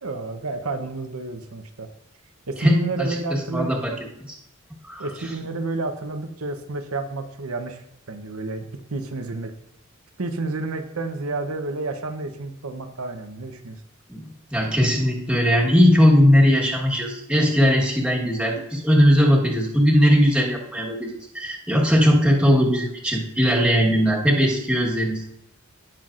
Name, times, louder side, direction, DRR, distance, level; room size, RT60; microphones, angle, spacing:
voice 1, 0.0-1.9 2.5-3.7 5.0-9.5 10.2-13.8, right 3 dB, 85° right, 6 dB, 0.9 m, -30 dB
voice 2, 2.6-3.9 4.3-4.4 4.8-5.1 14.1-25.2, equal, 5° right, -4 dB, 1.4 m, -19 dB
16.5 x 5.9 x 2.5 m, 0.79 s
head